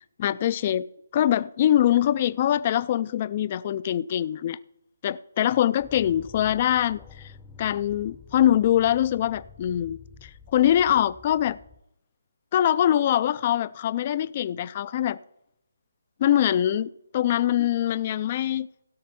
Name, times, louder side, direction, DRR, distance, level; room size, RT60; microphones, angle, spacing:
voice 1, 0.2-0.8 1.1-4.6 5.0-7.3 7.6-11.6 12.5-15.2 16.2-18.7, left 11 dB, 35° left, 0.4 m, -23 dB
sound 1, 5.8-11.8, left 6 dB, 10° left, 0.7 m, -49 dB
16.5 x 6.2 x 4.2 m
figure-of-eight pair, 155°, 0 cm